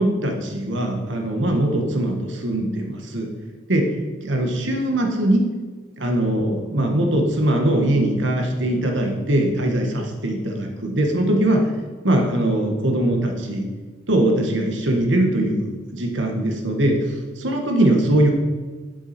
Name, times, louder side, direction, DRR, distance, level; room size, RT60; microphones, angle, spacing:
voice 1, 0.0-3.3 3.7-3.9 4.2-5.4 6.0-11.6 12.0-13.7 14.1-17.1 17.4-18.3, right 1 dB, 70° right, 2 dB, 1.5 m, -21 dB
7.9 x 7.8 x 4.3 m, 1.4 s
head